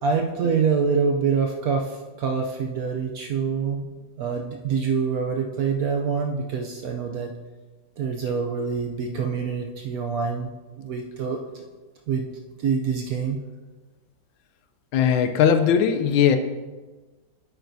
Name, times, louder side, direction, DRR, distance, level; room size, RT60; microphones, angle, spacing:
voice 1, 0.0-3.9 4.2-7.3 8.0-10.5 10.8-11.6 12.1-12.3 12.6-13.4, right 5 dB, 70° right, 2 dB, 0.9 m, -25 dB
voice 2, 14.9-16.4, left 8 dB, 85° left, 8 dB, 1.4 m, -19 dB
8.9 x 8.2 x 2.7 m, 1.3 s
omnidirectional pair, 2.1 m